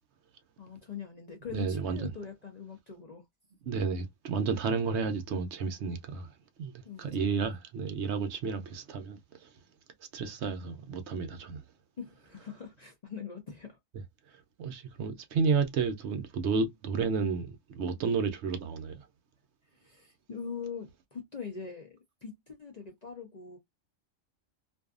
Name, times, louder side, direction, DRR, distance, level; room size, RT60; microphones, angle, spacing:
voice 1, 0.6-3.3 6.8-7.4 12.0-13.8 19.7-23.6, left 6 dB, 45° left, 0.5 m, -43 dB
voice 2, 1.5-2.1 3.7-6.3 6.6-9.5 10.1-11.6 14.6-19.1, right 5 dB, 65° right, 0.8 m, -31 dB
2.6 x 2.3 x 2.3 m
omnidirectional pair, 1.4 m